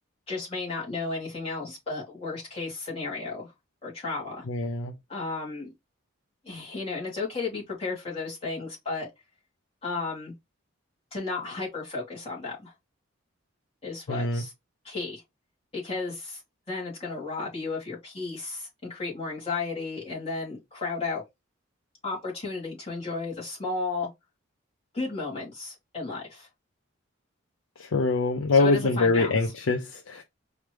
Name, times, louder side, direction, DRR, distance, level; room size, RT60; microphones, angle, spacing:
voice 1, 0.3-3.5 3.8-4.4 5.1-5.7 6.4-9.1 9.8-10.3 11.1-12.7 13.8-14.5 14.8-15.2 15.7-16.4 16.7-21.2 22.0-24.1 24.9-26.5 28.5-29.4, left 3 dB, 30° left, 2.9 m, -33 dB
voice 2, 4.5-4.9 14.1-14.4 27.8-30.2, left 3 dB, 75° left, 0.6 m, -24 dB
4.8 x 3.2 x 3.2 m
head